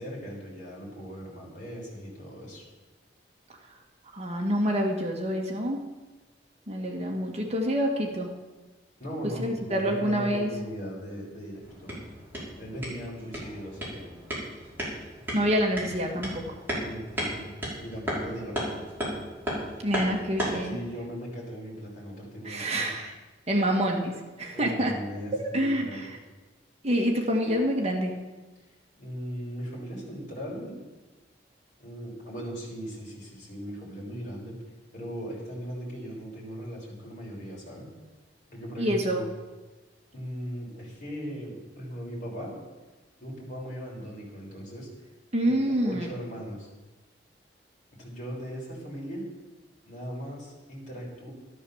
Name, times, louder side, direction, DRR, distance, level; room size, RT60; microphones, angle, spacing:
voice 1, 0.0-2.6 9.0-11.9 12.6-14.1 16.7-18.8 20.6-22.9 24.5-26.1 29.0-30.8 31.8-34.6 34.9-37.9 38.5-39.2 40.1-42.5 43.2-44.9 45.4-46.7 48.0-49.2 49.8-51.3, equal, 45° left, -3 dB, 6.2 m, -38 dB
voice 2, 4.1-5.8 6.7-8.3 9.4-10.5 14.9-15.0 15.3-16.6 19.8-20.8 22.4-23.1 23.5-24.1 24.4-24.9 25.3-26.2 26.8-28.1 38.8-39.2 45.3-46.1, equal, 35° right, 1 dB, 1.9 m, -27 dB
sound 1, 11.6-20.7, equal, 10° right, 5.5 m, -35 dB
13.5 x 12.5 x 7.3 m, 1.2 s
head